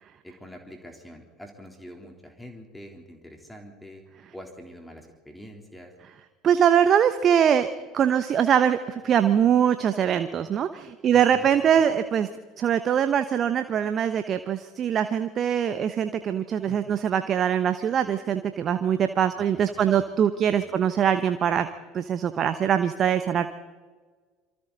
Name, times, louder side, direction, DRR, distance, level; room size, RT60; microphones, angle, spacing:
voice 1, 0.2-4.0 4.3-5.9 11.1-11.5 16.7-17.0 19.8-20.0 20.5-20.9, equal, 5° left, 3 dB, 3.7 m, -45 dB
voice 2, 6.4-7.7 7.9-12.3 12.6-21.7 21.9-23.5, right 8 dB, 40° right, 10 dB, 1.1 m, -22 dB
27.0 x 24.5 x 4.1 m, 1.4 s
figure-of-eight pair, 65°, 0 cm